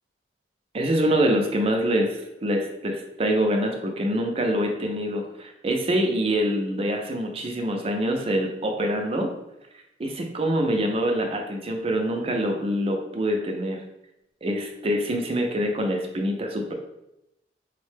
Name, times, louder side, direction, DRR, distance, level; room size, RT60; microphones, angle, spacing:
voice 1, 0.7-9.3 10.0-13.8 14.4-16.7, equal, 35° right, 3 dB, 0.4 m, -25 dB
3.8 x 2.1 x 3.2 m, 0.86 s
head